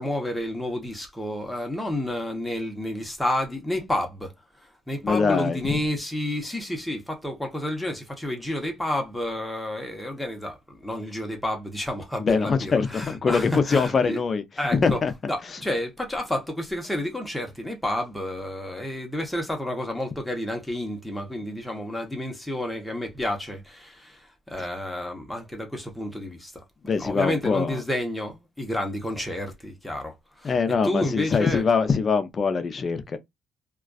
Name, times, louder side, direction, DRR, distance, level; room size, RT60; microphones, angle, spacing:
voice 1, 0.0-4.3 4.9-14.2 14.6-15.0 15.3-26.5 27.0-30.5 30.8-31.6, left 1 dB, 5° left, 0.8 m, -30 dB
voice 2, 5.0-5.8 12.2-14.4 14.7-15.1 15.4-15.6 24.6-24.7 26.9-27.8 30.4-33.2, left 5 dB, 40° left, 0.5 m, -23 dB
2.4 x 2.3 x 2.3 m
cardioid pair, 100°, 0 cm